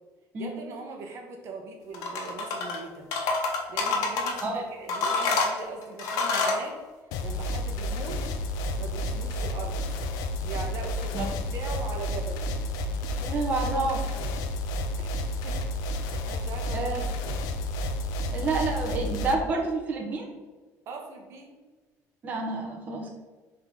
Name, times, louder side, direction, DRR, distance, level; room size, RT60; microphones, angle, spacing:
voice 1, 0.4-3.1 3.7-6.8 7.2-8.2 8.8-9.8 10.4-12.5 15.0-17.1 20.9-21.6, right 3 dB, 45° right, 2 dB, 1.2 m, -40 dB
sound 1, 1.9-2.8 3.1-4.4 4.9-6.6, left 3 dB, 75° left, 1.5 m, -27 dB
sound 2, 7.1-19.3, left 1 dB, 90° left, 0.7 m, -31 dB
voice 2, 13.2-14.0 16.7-17.0 18.3-20.3 22.2-23.2, right 3 dB, 25° right, -1 dB, 1.2 m, -29 dB
7.7 x 3.8 x 6.1 m, 1.3 s
cardioid pair, 170°, 6 cm